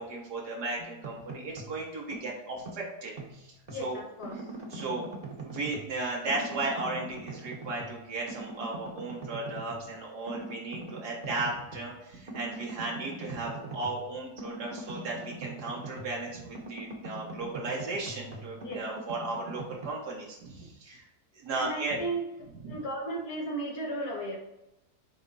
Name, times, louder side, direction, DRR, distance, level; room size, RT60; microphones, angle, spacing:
voice 1, 0.0-4.0 4.7-5.1 5.4-21.0 21.4-22.0 22.6-22.7, right 2 dB, 90° right, -3 dB, 1.9 m, -35 dB
sound 1, 0.8-1.8 2.1-3.9 4.2-6.0 6.3-8.0 8.3-9.9 10.3-11.9 12.3-16.2 16.5-19.9, right 2 dB, 30° right, 1.0 m, -42 dB
voice 2, 3.7-4.5 18.6-18.9 20.6-20.7 21.5-22.2 22.7-24.4, right 2 dB, 70° left, -2 dB, 2.1 m, -35 dB
8.7 x 3.3 x 4.1 m, 0.91 s
omnidirectional pair, 1.7 m